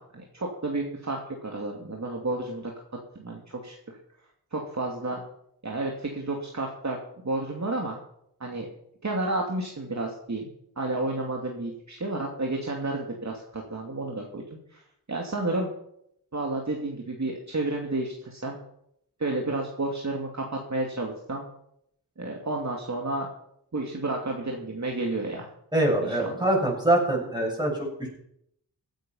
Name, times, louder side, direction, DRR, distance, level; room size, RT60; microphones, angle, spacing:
voice 1, 0.0-2.7 3.2-4.0 4.5-5.2 5.6-7.0 7.2-8.0 8.4-8.7 9.0-10.5 10.8-14.4 14.7-14.8 15.1-15.7 16.3-18.6 19.2-21.5 22.2-23.3 23.7-25.5 26.1-26.3, right 2 dB, 40° right, 0 dB, 2.7 m, -31 dB
voice 2, 25.7-28.1, right 1 dB, 10° right, -1 dB, 7.4 m, -24 dB
16.5 x 9.1 x 5.7 m, 0.75 s
cardioid pair, 50°, 42 cm